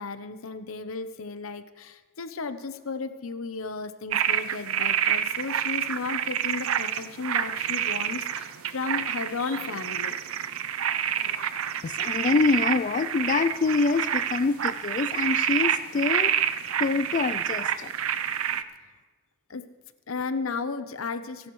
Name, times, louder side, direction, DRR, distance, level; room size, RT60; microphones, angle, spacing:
voice 1, 0.0-10.2 19.5-19.7 20.1-21.5, left 4 dB, 80° left, 11 dB, 0.8 m, -34 dB
sound 1, 4.1-18.6, right 9 dB, 90° right, 0.6 m, -28 dB
voice 2, 11.8-16.3 16.8-17.9, left 4 dB, 40° left, 12 dB, 0.3 m, -25 dB
27.5 x 11.5 x 3.2 m, 1.3 s
head